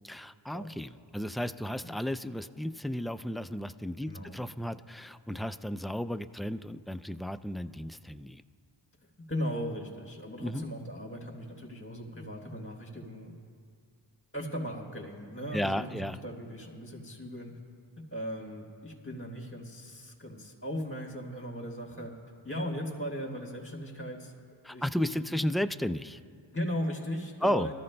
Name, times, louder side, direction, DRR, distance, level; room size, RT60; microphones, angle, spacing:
voice 1, 0.0-8.4 10.4-10.7 15.5-16.2 24.6-26.2 27.4-27.7, equal, ahead, 11 dB, 0.3 m, -33 dB
voice 2, 4.1-4.4 9.3-13.3 14.3-17.5 18.1-22.1 22.4-25.2 26.5-27.7, equal, 25° left, -1 dB, 3.4 m, -38 dB
24.0 x 14.0 x 2.2 m, 2.2 s
cardioid pair, 40°, 50 cm